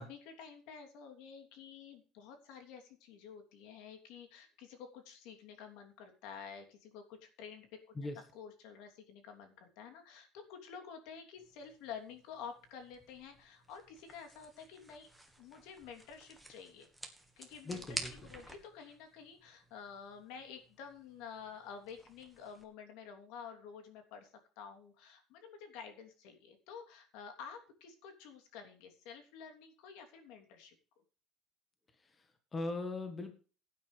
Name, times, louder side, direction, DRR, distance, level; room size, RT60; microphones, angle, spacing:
voice 1, 0.0-7.7 8.3-15.1 15.4-16.9 17.4-18.0 18.3-24.3 24.6-30.7, left 6 dB, 70° left, 5 dB, 3.0 m, -50 dB
sound 1, 11.4-22.6, right 1 dB, ahead, 1.6 m, -51 dB
voice 2, 17.6-18.1 32.0-33.3, left 2 dB, 15° left, 7 dB, 1.5 m, -40 dB
17.0 x 9.3 x 3.3 m, 0.37 s
cardioid pair, 175°, 0 cm